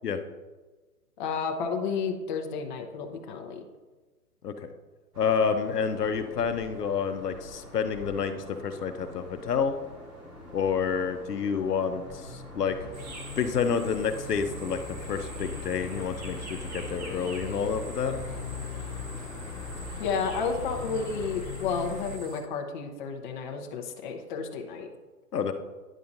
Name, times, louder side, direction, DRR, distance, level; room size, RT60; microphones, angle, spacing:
voice 1, 1.2-3.6 20.0-24.9, left 5 dB, 30° left, 3 dB, 0.7 m, -31 dB
sound 1, 5.1-21.4, left 1 dB, 10° right, 0.5 m, -45 dB
voice 2, 5.2-9.8 10.5-12.8 13.4-14.8 15.1-18.2 25.3-25.5, left 6 dB, 80° left, 7 dB, 0.8 m, -29 dB
sound 2, 12.7-22.2, left 4 dB, 55° left, 0.9 m, -40 dB
sound 3, 12.9-22.4, right 3 dB, 45° right, 1.4 m, -46 dB
10.0 x 5.6 x 2.6 m, 1.2 s
hypercardioid pair, 135°, 47 cm